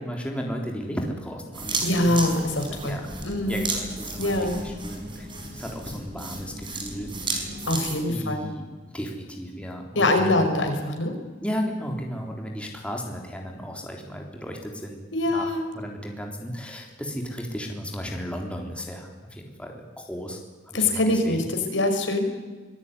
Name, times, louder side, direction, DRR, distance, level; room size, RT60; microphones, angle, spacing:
voice 1, 0.0-2.2 2.7-3.1 3.4-7.1 8.1-8.7 8.9-10.7 11.4-21.5, equal, 5° left, 1 dB, 3.8 m, -34 dB
sound 1, 1.5-8.0, right 3 dB, 25° right, 5.3 m, -33 dB
voice 2, 1.8-3.7 4.2-4.6 7.7-8.5 10.0-11.1 15.1-15.7 20.7-22.3, left 2 dB, 75° left, 5 dB, 5.4 m, -24 dB
25.0 x 20.0 x 9.9 m, 1.3 s
head